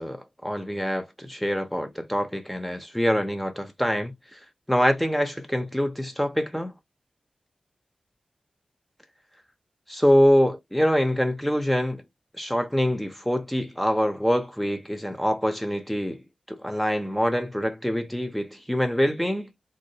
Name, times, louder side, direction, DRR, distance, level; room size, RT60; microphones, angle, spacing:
voice 1, 0.0-4.4 4.7-6.7 9.9-12.0 12.4-16.2 16.5-19.5, equal, 5° left, 0.6 m, -25 dB
3.7 x 2.1 x 2.7 m
cardioid pair, 65°, 2 cm